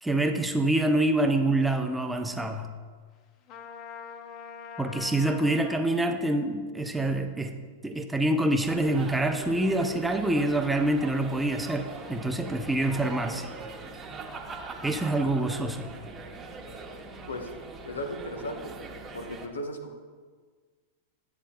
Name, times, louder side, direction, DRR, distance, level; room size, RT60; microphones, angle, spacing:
voice 1, 0.0-2.7 4.8-7.5 7.8-13.5 14.8-15.9, right 1 dB, 5° right, 5 dB, 0.7 m, -26 dB
Trumpet, 3.5-6.0, left 6 dB, 40° left, 0.7 m, -43 dB
sound 1, 8.6-19.5, right 3 dB, 25° right, 1.1 m, -42 dB
voice 2, 17.9-18.9 19.1-20.0, left 1 dB, 80° left, 4 dB, 1.1 m, -36 dB
12.5 x 8.2 x 2.4 m, 1.5 s
hypercardioid pair, 95°, 0 cm